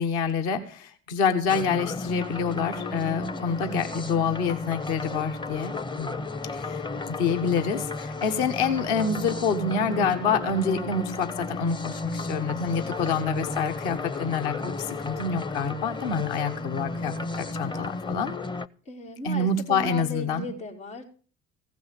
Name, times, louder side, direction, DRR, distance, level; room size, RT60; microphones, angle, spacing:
voice 1, 0.0-6.2 6.5-18.3 19.2-20.5, left 5 dB, 70° left, 6 dB, 1.3 m, -27 dB
sound 1, 1.5-18.7, left 3 dB, 10° left, 0.5 m, -33 dB
voice 2, 3.2-3.5 18.8-21.0, left 3 dB, 85° left, -2 dB, 2.9 m, -37 dB
15.5 x 5.9 x 9.1 m, 0.40 s
hypercardioid pair, 50°, 39 cm